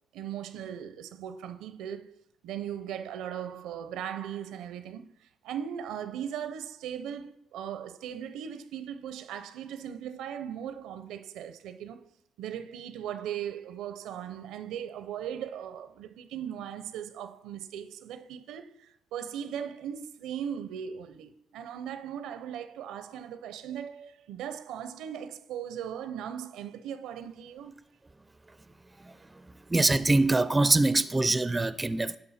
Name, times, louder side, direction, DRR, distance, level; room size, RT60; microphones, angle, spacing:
voice 1, 0.1-2.1 2.4-5.1 5.4-12.1 12.4-27.7, right 9 dB, 90° right, 0.6 m, -38 dB
voice 2, 29.7-32.2, right 2 dB, 20° right, 0.4 m, -24 dB
11.5 x 5.3 x 4.2 m
cardioid pair, 90°, 0 cm